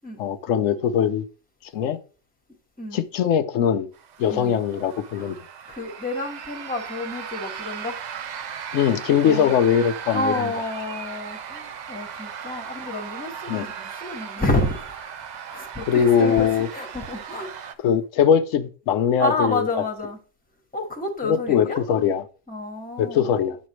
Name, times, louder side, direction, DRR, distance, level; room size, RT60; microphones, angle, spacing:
voice 1, 0.2-1.2 1.7-2.0 2.9-3.9 4.2-5.4 8.7-10.5 13.5-13.7 15.9-16.7 17.8-19.7 21.2-22.2 23.0-23.6, left 8 dB, 85° left, 1.0 m, -21 dB
sound 1, 3.9-17.7, right 7 dB, 65° right, 0.4 m, -37 dB
voice 2, 4.3-4.6 5.1-5.3 5.7-8.0 9.2-9.6 10.1-15.0 15.5-17.5 19.2-20.2 20.7-21.8 22.5-23.3, left 2 dB, 5° left, 1.2 m, -29 dB
9.1 x 6.3 x 3.1 m
omnidirectional pair, 1.3 m